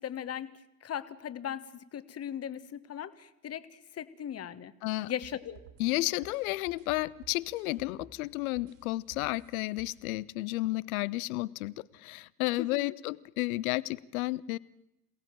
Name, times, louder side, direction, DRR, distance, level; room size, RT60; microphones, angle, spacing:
voice 1, 0.0-4.7 5.0-5.6 12.6-12.9, left 9 dB, 30° left, 13 dB, 1.5 m, -38 dB
sound 1, 4.9-8.2 8.6-10.0, right 6 dB, 60° right, 5.3 m, -55 dB
voice 2, 5.8-14.6, left 19 dB, 60° left, 20 dB, 0.8 m, -32 dB
27.5 x 18.0 x 7.6 m, 0.88 s
figure-of-eight pair, 65°, 48 cm